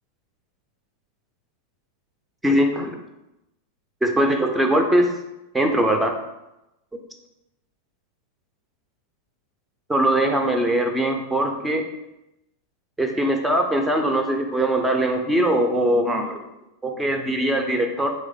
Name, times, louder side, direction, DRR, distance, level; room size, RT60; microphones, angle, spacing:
voice 1, 2.4-2.9 4.0-5.1 5.5-6.2 9.9-11.8 13.0-16.4 16.8-18.1, right 1 dB, 5° right, 3 dB, 0.6 m, -21 dB
4.1 x 3.3 x 3.6 m, 0.92 s
figure-of-eight pair, 90°, 0 cm